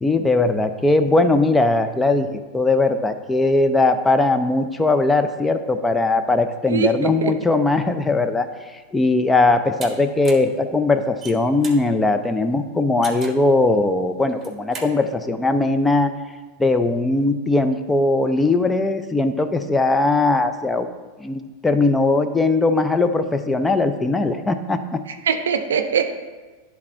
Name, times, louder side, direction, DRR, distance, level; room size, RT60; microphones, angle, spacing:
voice 1, 0.0-16.1 16.6-20.9 21.2-25.0, left 2 dB, 10° left, 9 dB, 0.5 m, -19 dB
voice 2, 6.7-7.3 25.3-26.0, right 7 dB, 80° right, 8 dB, 0.5 m, -21 dB
sound 1, 9.8-9.9 10.2-10.5 11.1-11.8 13.0-13.5 14.3-14.9, right 5 dB, 25° right, 1.1 m, -36 dB
10.5 x 3.6 x 4.3 m, 1.3 s
hypercardioid pair, 95°, 0 cm